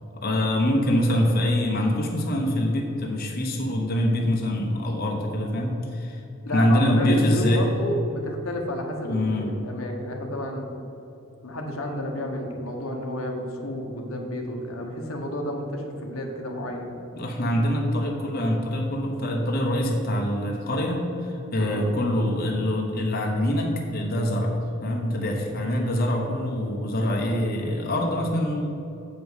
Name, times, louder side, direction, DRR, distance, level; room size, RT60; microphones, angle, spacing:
voice 1, 0.1-6.2 6.5-7.6 9.0-9.5 17.2-24.5 24.8-28.7, left 1 dB, 45° left, 0 dB, 1.0 m, -24 dB
voice 2, 6.4-10.7 11.4-17.0 21.6-21.9 25.5-25.8, left 1 dB, 90° left, 1 dB, 1.2 m, -31 dB
7.8 x 5.3 x 6.4 m, 2.9 s
head